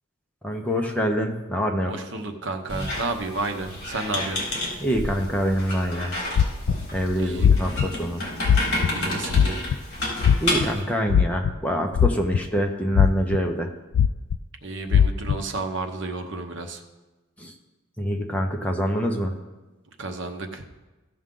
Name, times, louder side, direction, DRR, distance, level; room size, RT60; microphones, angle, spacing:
voice 1, 0.4-1.9 4.8-6.1 6.9-8.2 10.4-13.7 17.4-17.5 18.0-19.3, equal, 5° left, 1 dB, 0.8 m, -25 dB
voice 2, 1.9-4.4 7.2-7.6 8.8-9.6 14.6-16.8 20.0-20.6, right 3 dB, 55° right, 5 dB, 0.9 m, -31 dB
Squeak, 2.7-10.8, left 1 dB, 50° left, 3.6 m, -30 dB
sound 1, 6.4-6.9 7.4-7.9 8.4-8.9 9.3-9.7 10.2-10.7 11.1-11.5 12.0-12.6 12.9-13.4 13.9-14.4 14.9-15.4, left 8 dB, 85° left, 0.3 m, -18 dB
16.0 x 6.3 x 3.8 m, 1.1 s
head